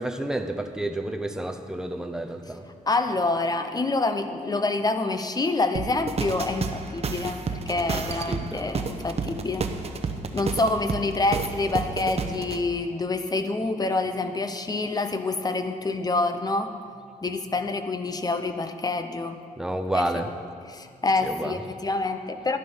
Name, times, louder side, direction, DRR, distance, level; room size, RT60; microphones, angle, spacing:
voice 1, 0.0-2.7 7.9-8.8 19.6-20.3 21.2-21.6, right 1 dB, 5° right, 5 dB, 0.8 m, -30 dB
voice 2, 2.9-9.6 10.3-16.8 17.2-19.4 19.9-20.0 20.7-22.6, left 3 dB, 25° left, 8 dB, 0.9 m, -27 dB
sound 1, 5.8-12.6, right 4 dB, 45° right, 0.9 m, -31 dB
12.5 x 11.5 x 5.6 m, 2.2 s
cardioid pair, 110°, 15 cm